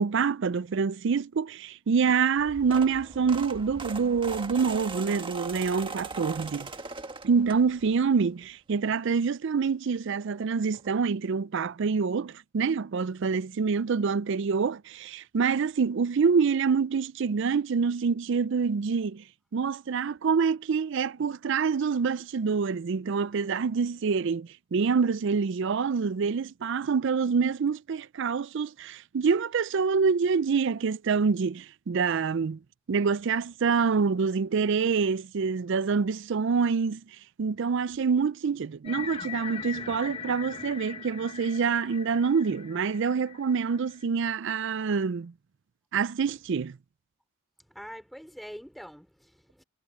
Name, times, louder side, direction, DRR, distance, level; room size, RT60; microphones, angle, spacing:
voice 1, 0.0-6.7 7.2-19.2 19.5-32.6 32.9-37.0 37.4-45.3 45.9-46.8, right 5 dB, 60° right, 0.4 m, -26 dB
sound 1, 2.4-8.0 8.5-8.7 10.0-10.1 10.3-10.4 10.7-10.9, right 4 dB, 25° right, 1.5 m, -40 dB
sound 2, 38.8-44.0, left 6 dB, 25° left, 1.1 m, -41 dB
voice 2, 47.7-49.6, equal, ahead, 5.2 m, -44 dB
head